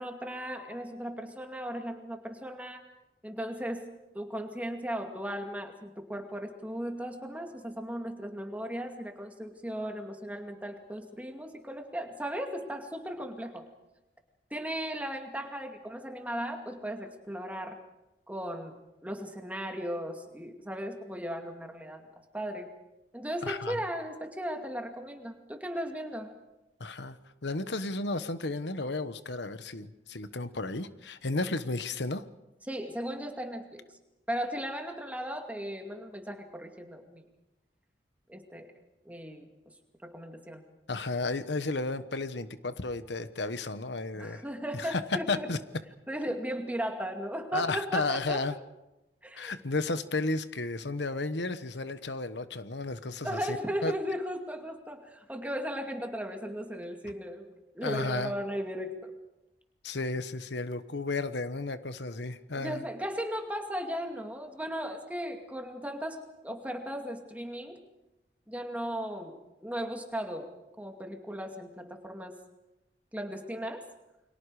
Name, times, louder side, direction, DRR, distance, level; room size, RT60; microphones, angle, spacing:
voice 1, 0.0-2.9 3.2-3.9 4.1-13.7 14.5-17.8 18.3-18.8 19.0-22.1 22.3-22.7 23.1-26.3 32.7-33.8 34.3-37.2 38.3-38.7 39.1-39.5 40.0-40.6 44.1-45.5 46.1-48.4 49.2-49.5 53.2-59.1 62.5-67.8 68.5-70.5 70.8-72.4 73.1-73.9, equal, 10° right, 4 dB, 2.3 m, -36 dB
voice 2, 23.4-23.8 26.8-27.2 27.4-32.2 40.9-44.4 44.7-45.0 45.3-45.6 47.5-48.5 49.3-53.6 53.8-53.9 57.8-58.3 59.8-62.8, left 3 dB, 85° left, 11 dB, 1.2 m, -33 dB
29.5 x 23.5 x 5.0 m, 0.97 s
head